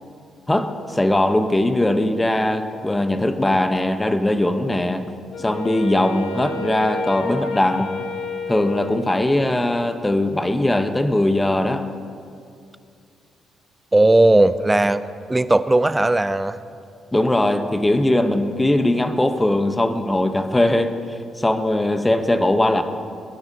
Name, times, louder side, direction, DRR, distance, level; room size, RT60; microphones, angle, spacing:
voice 1, 0.5-5.0 5.4-8.0 8.5-11.9 17.1-22.8, left 1 dB, 15° left, 8 dB, 0.9 m, -20 dB
Wind instrument woodwind instrument, 5.3-9.7, left 3 dB, 85° left, 1.2 m, -31 dB
voice 2, 13.9-15.0 15.3-16.6, right 2 dB, 15° right, 13 dB, 0.5 m, -16 dB
21.0 x 10.5 x 2.8 m, 2.3 s
cardioid pair, 90°, 0 cm